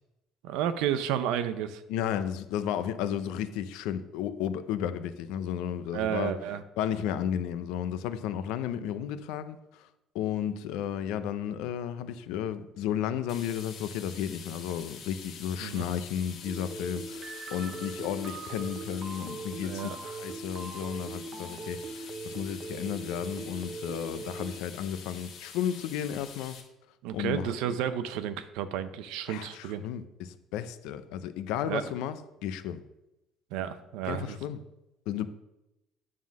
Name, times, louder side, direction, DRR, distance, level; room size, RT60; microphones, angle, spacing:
voice 1, 0.4-1.8 5.9-6.6 15.6-15.8 19.6-20.1 27.0-29.8 31.7-31.8 33.5-34.4, right 9 dB, 80° right, 0.6 m, -32 dB
voice 2, 1.9-6.3 6.8-9.9 10.1-19.9 20.2-26.6 27.1-27.5 29.3-32.8 34.1-34.6 35.1-35.3, left 9 dB, 80° left, 0.5 m, -33 dB
sound 1, 13.3-26.6, left 6 dB, 50° left, 1.5 m, -46 dB
sound 2, 16.4-24.6, right 4 dB, 35° right, 0.6 m, -41 dB
9.3 x 3.7 x 6.2 m
cardioid pair, 165°, 0 cm